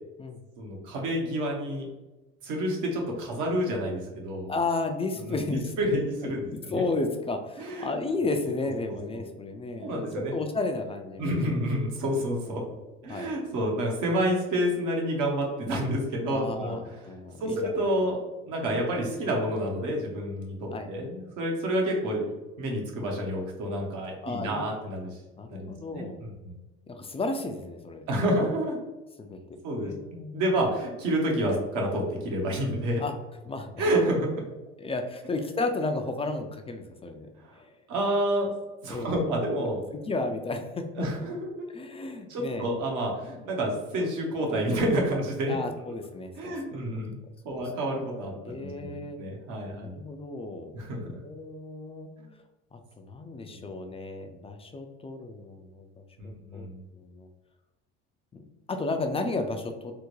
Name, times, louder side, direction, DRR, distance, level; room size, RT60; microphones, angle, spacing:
voice 1, 0.6-1.9 2.4-4.5 5.3-6.8 7.6-7.9 8.9-9.0 9.8-10.4 11.2-12.6 13.0-16.8 17.4-22.3 22.6-25.1 25.5-26.5 28.1-28.8 29.6-33.0 33.8-34.3 37.9-38.5 38.8-39.8 41.0-41.7 42.3-45.6 46.4-47.2 47.4-48.3 48.6-50.0 50.7-51.1 52.2-52.3 53.5-53.6 56.2-56.8, right 1 dB, 65° right, -1 dB, 1.1 m, -29 dB
voice 2, 4.5-5.7 6.4-11.3 12.5-12.6 13.1-13.3 15.7-15.9 16.3-17.7 20.7-20.9 24.2-24.7 25.4-26.2 26.9-28.0 29.2-29.4 29.8-30.7 31.5-31.6 33.0-33.1 33.4-33.8 34.8-37.7 38.9-39.1 39.9-41.1 41.7-42.7 45.5-46.5 47.5-47.6 48.4-49.2 49.7-50.8 51.0-52.1 52.7-55.9 56.2-57.3 58.3-58.4 58.7-59.9, left 3 dB, 20° left, 5 dB, 0.4 m, -33 dB
3.5 x 2.1 x 3.1 m, 1.1 s
supercardioid pair, 85°, 32 cm